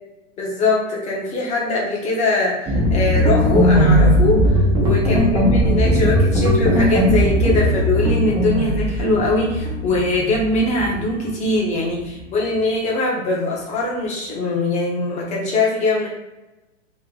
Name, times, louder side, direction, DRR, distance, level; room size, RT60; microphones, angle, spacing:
voice 1, 0.4-16.1, left 2 dB, 20° left, -3 dB, 1.0 m, -22 dB
sound 1, 2.7-12.1, equal, 10° right, 0.7 m, -18 dB
3.2 x 2.9 x 3.8 m, 1.0 s
hypercardioid pair, 145°, 37 cm